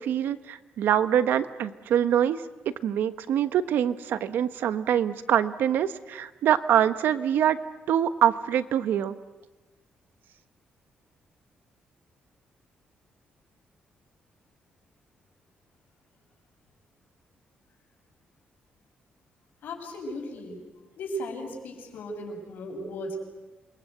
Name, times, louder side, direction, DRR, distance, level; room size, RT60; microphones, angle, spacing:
voice 1, 0.0-2.4 2.8-7.6 7.9-9.1, right 10 dB, 80° right, 12 dB, 1.2 m, -24 dB
voice 2, 19.6-20.6 21.0-23.1, equal, 70° left, 2 dB, 6.8 m, -36 dB
28.5 x 22.5 x 8.1 m, 1.2 s
cardioid pair, 160°, 3 cm